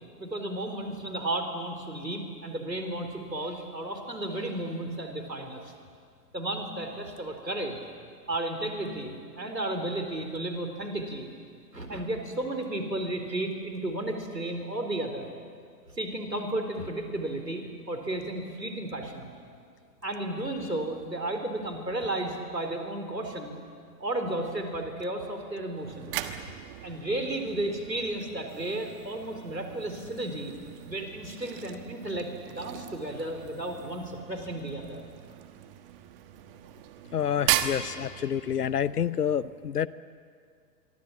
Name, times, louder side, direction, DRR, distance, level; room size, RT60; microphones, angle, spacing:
voice 1, 0.2-5.7 6.3-7.8 8.3-11.3 11.7-15.3 15.9-19.3 20.0-23.6 24.0-26.2 26.8-30.5 30.8-32.3 32.6-35.0, right 1 dB, 90° right, 5 dB, 4.2 m, -33 dB
sound 1, 25.7-38.8, right 12 dB, 35° right, 1.5 m, -37 dB
voice 2, 37.1-39.9, left 8 dB, 70° left, 17 dB, 0.9 m, -28 dB
26.0 x 23.5 x 7.4 m, 2.2 s
figure-of-eight pair, 115°, 49 cm